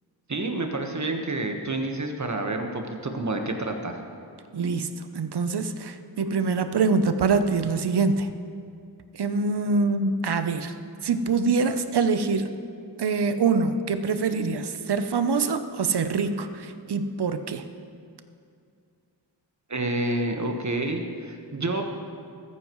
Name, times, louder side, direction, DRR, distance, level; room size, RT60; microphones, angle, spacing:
voice 1, 0.3-4.0 19.7-21.8, right 2 dB, 40° right, 4 dB, 1.4 m, -29 dB
voice 2, 4.5-8.3 9.1-10.7 11.0-12.5 13.0-17.6, right 4 dB, 65° right, 9 dB, 0.8 m, -25 dB
14.5 x 14.0 x 3.1 m, 2.4 s
cardioid pair, 55°, 44 cm